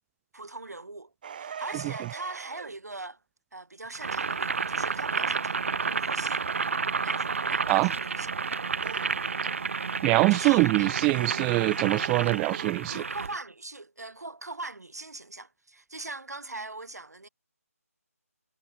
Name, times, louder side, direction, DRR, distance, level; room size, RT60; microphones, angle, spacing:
voice 1, 0.3-3.2 3.5-6.5 7.0-8.3 10.3-10.9 12.9-17.3, right 2 dB, 85° right, 3.3 m, -41 dB
sound 1, 1.2-2.8 8.8-9.2 10.7-12.8, right 8 dB, 35° right, 1.2 m, -41 dB
Boiling, 3.9-13.4, right 5 dB, 55° right, 1.2 m, -30 dB
voice 2, 10.0-13.0, right 25 dB, 10° right, 0.4 m, -24 dB
figure-of-eight pair, 160°, 8 cm